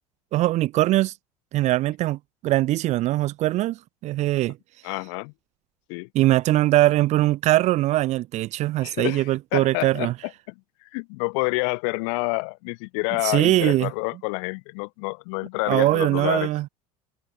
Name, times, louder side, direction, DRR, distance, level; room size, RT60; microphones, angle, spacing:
voice 1, 0.3-1.1 1.5-4.6 6.1-10.1 13.2-13.9 15.7-16.7, right 16 dB, 35° right, 0.5 m, -21 dB
voice 2, 4.8-5.3 5.9-6.1 8.8-10.5 10.9-16.5, left 38 dB, 55° left, 0.9 m, -28 dB
figure-of-eight pair, 70°, 19 cm